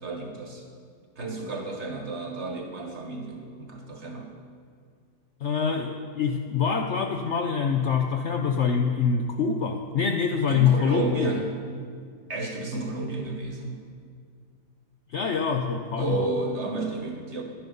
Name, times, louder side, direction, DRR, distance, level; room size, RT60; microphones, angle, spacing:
voice 1, 0.0-0.6 1.2-4.3 10.5-11.6 12.3-13.8 16.0-17.4, right 3 dB, 45° right, 2 dB, 1.5 m, -32 dB
voice 2, 5.4-11.4 15.1-16.3, left 6 dB, 60° left, 4 dB, 0.7 m, -25 dB
12.0 x 10.0 x 5.4 m, 2.2 s
omnidirectional pair, 1.8 m